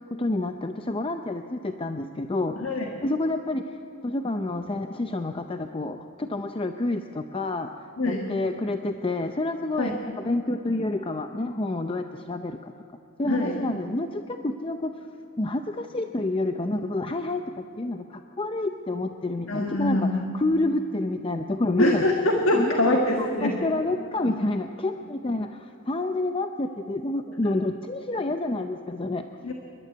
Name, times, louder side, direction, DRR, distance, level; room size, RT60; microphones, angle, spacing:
voice 1, 0.0-2.6 3.0-3.6 4.0-7.7 8.1-12.7 13.2-14.9 15.4-20.0 20.3-22.0 22.5-29.2, left 2 dB, 25° left, 6 dB, 0.6 m, -28 dB
voice 2, 2.6-2.9 8.0-8.3 9.8-10.0 13.3-13.6 19.5-20.3 21.8-23.6 29.4-29.5, left 1 dB, 70° left, 2 dB, 1.5 m, -24 dB
28.0 x 12.0 x 9.3 m, 2.7 s
head